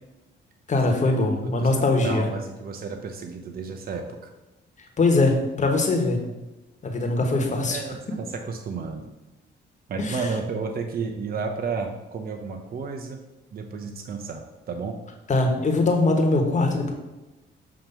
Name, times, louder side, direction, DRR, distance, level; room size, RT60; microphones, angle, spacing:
voice 1, 0.7-2.3 5.0-6.2 6.8-7.8 10.0-10.2 15.3-16.9, left 2 dB, 40° left, 3 dB, 1.4 m, -22 dB
voice 2, 2.0-4.3 7.2-7.3 7.7-9.1 9.9-13.2 13.5-15.0, right 4 dB, 50° right, 4 dB, 0.7 m, -32 dB
7.3 x 3.0 x 5.6 m, 1.1 s
cardioid pair, 90°, 20 cm